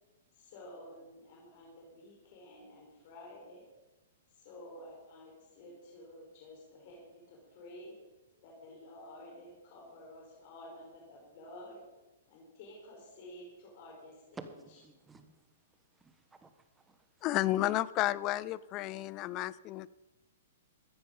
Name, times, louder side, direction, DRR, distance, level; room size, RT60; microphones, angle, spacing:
voice 1, 0.3-3.6 4.3-7.9 8.4-11.8 12.3-14.4, left 1 dB, 50° left, 4.6 m, -51 dB
voice 2, 14.3-15.5 15.9-17.3, right 3 dB, 10° right, 1.3 m, -52 dB
voice 3, 17.2-19.9, left 15 dB, 30° left, 0.5 m, -32 dB
14.5 x 9.7 x 5.3 m
hypercardioid pair, 135°, 0 cm